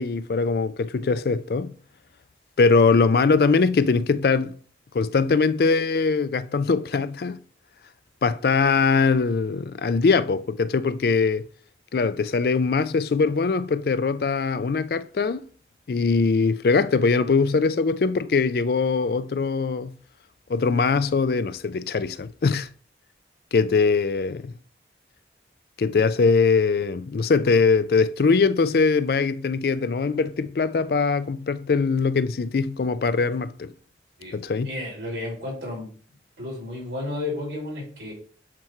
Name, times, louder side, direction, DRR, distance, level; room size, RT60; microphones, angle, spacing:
voice 1, 0.0-1.7 2.6-4.6 4.9-7.4 8.2-11.5 11.9-15.4 15.9-19.9 20.5-22.7 23.5-24.5 25.8-33.7 34.3-34.7, left 4 dB, 60° left, 0.4 m, -22 dB
voice 2, 34.6-35.9 36.4-38.1, left 2 dB, 85° right, 3.0 m, -32 dB
7.6 x 3.0 x 4.3 m
head